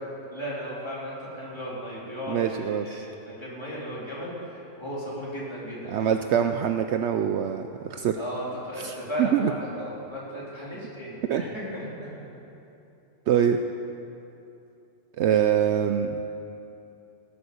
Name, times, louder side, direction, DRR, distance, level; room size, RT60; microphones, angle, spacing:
voice 1, 0.3-6.1 8.2-11.9 12.1-12.2, equal, 20° left, -7 dB, 3.7 m, -35 dB
voice 2, 2.3-3.1 5.9-8.2 8.8-9.5 11.3-11.4 13.3-13.6 15.2-16.2, right 9 dB, 70° right, 7 dB, 0.8 m, -24 dB
17.0 x 8.7 x 6.9 m, 2.8 s
omnidirectional pair, 1.3 m